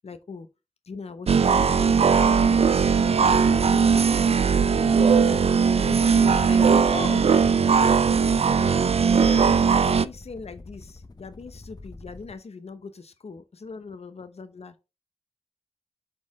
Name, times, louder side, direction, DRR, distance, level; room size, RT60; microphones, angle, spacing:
voice 1, 0.0-0.5 0.8-4.1 4.5-5.4 5.8-7.3 9.1-14.8, left 4 dB, 75° left, 0.8 m, -40 dB
sound 1, 1.3-10.1, right 6 dB, 70° right, 0.4 m, -19 dB
sound 2, 1.8-12.4, left 2 dB, 40° left, 0.9 m, -46 dB
5.5 x 4.3 x 4.8 m
wide cardioid pair, 80°, 11 cm